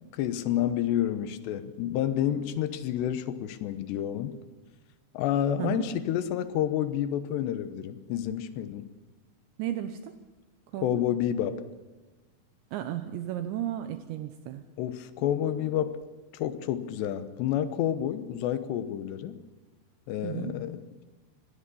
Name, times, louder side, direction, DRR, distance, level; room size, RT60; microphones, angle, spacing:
voice 1, 0.2-4.4 5.1-8.9 10.8-11.6 14.8-16.0 16.3-19.4 20.1-21.0, left 11 dB, 75° left, 11 dB, 2.8 m, -29 dB
voice 2, 5.6-5.9 9.6-10.1 10.7-11.0 12.7-14.6 20.2-20.5, right 12 dB, 80° right, 9 dB, 2.9 m, -34 dB
25.0 x 18.5 x 7.0 m, 1.3 s
omnidirectional pair, 5.7 m